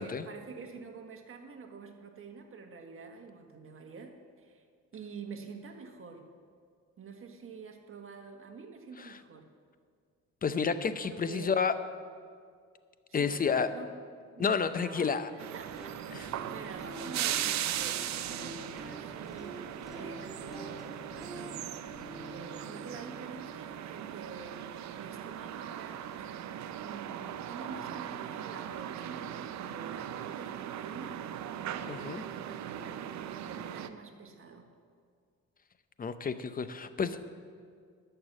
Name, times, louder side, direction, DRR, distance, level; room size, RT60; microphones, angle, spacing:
voice 1, 0.0-4.6 4.9-6.2 7.0-9.5 11.1-11.7 13.1-13.9 14.3-19.6 19.9-21.7 22.3-24.6 24.9-26.5 26.8-34.7, right 5 dB, 45° right, 4 dB, 1.5 m, -47 dB
voice 2, 10.4-11.7 13.1-13.7 14.4-15.3 16.1-16.3 31.9-32.2 36.0-37.4, left 6 dB, 30° left, 12 dB, 0.7 m, -30 dB
sound 1, 15.4-33.9, right 10 dB, 65° right, 0.6 m, -39 dB
sound 2, 15.6-25.5, right 1 dB, ahead, 2.8 m, -48 dB
11.5 x 6.9 x 7.4 m, 2.1 s
cardioid pair, 90°, 30 cm